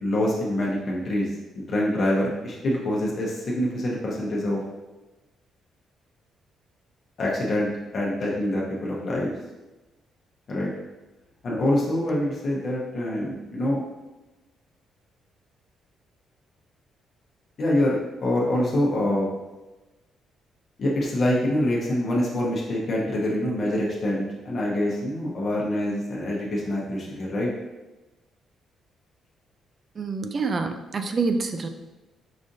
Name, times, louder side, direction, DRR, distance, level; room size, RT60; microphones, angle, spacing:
voice 1, 0.0-4.6 7.2-9.3 10.5-10.7 11.4-13.8 17.6-19.3 20.8-27.5, left 1 dB, 50° left, -4 dB, 0.8 m, -25 dB
voice 2, 30.0-31.7, right 4 dB, 40° right, 7 dB, 0.3 m, -27 dB
4.9 x 2.5 x 2.7 m, 1.1 s
cardioid pair, 90°, 0 cm